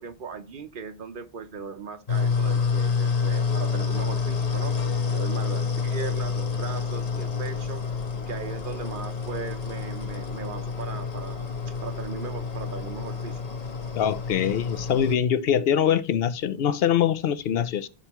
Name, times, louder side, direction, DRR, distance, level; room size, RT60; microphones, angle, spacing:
voice 1, 0.0-4.8 5.1-7.8 8.3-13.4, right 5 dB, 55° right, 0.9 m, -38 dB
sound 1, 2.1-15.1, left 5 dB, 40° left, 0.9 m, -28 dB
voice 2, 13.9-17.9, left 9 dB, 70° left, 0.8 m, -23 dB
13.0 x 4.5 x 2.9 m
omnidirectional pair, 1.1 m